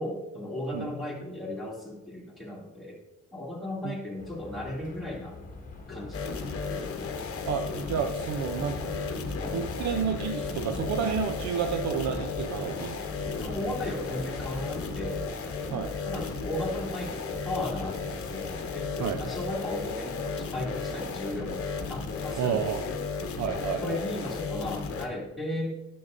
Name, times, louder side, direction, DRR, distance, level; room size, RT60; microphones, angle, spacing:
voice 1, 0.0-3.0 3.3-5.4 5.9-7.1 9.4-9.6 13.4-15.3 16.1-18.9 19.2-23.0 23.5-25.7, left 1 dB, ahead, -4 dB, 2.5 m, -36 dB
sound 1, 4.2-20.0, left 2 dB, 25° left, 1.3 m, -43 dB
sound 2, 6.1-25.1, left 4 dB, 50° left, 1.0 m, -35 dB
voice 2, 7.4-13.0 15.7-15.9 19.0-19.2 22.4-22.8 23.4-24.0, right 7 dB, 65° right, 6 dB, 0.6 m, -30 dB
9.6 x 7.7 x 2.6 m, 0.95 s
cardioid pair, 90°, 30 cm